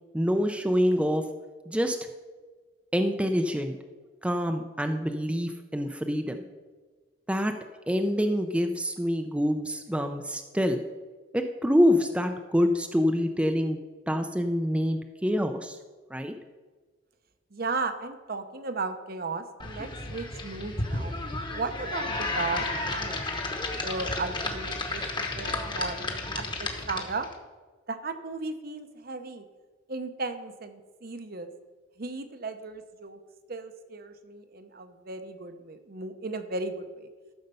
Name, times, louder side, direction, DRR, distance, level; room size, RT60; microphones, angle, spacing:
voice 1, 0.1-1.2 1.7-2.0 2.9-3.8 4.2-6.4 7.3-7.5 7.9-10.8 11.3-13.8 14.1-15.8 16.1-16.3, equal, 5° right, 6 dB, 0.5 m, -26 dB
voice 2, 17.5-21.2 21.5-23.2 23.8-27.3 27.9-29.4 29.9-31.5 32.0-33.2 33.5-37.1, right 3 dB, 50° right, 8 dB, 0.8 m, -35 dB
sound 1, 19.6-27.3, left 2 dB, 25° left, 1.1 m, -32 dB
13.5 x 6.6 x 5.4 m, 1.4 s
head